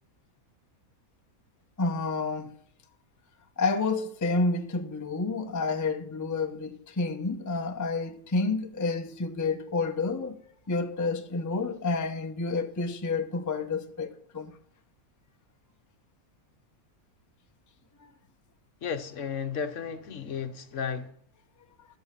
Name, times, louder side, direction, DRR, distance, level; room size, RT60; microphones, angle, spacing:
voice 1, 1.8-2.5 3.6-10.4 10.7-14.5 18.0-18.1, left 3 dB, 20° left, 0.6 m, -29 dB
voice 2, 18.8-21.1, left 7 dB, 60° left, 1.2 m, -33 dB
13.5 x 7.0 x 5.6 m
omnidirectional pair, 1.5 m